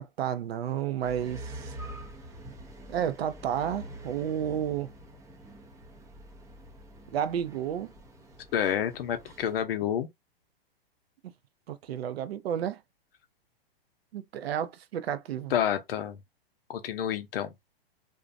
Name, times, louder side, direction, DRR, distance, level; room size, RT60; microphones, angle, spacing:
voice 1, 0.0-1.7 2.9-4.9 7.1-7.9 11.7-12.8 14.1-15.5, right 9 dB, 85° right, 0.5 m, -31 dB
sound 1, 1.0-9.6, right 1 dB, 10° right, 0.5 m, -46 dB
voice 2, 8.5-10.1 15.5-16.2 16.7-17.5, left 9 dB, 70° left, 0.6 m, -29 dB
2.6 x 2.1 x 2.5 m
hypercardioid pair, 140°, 30 cm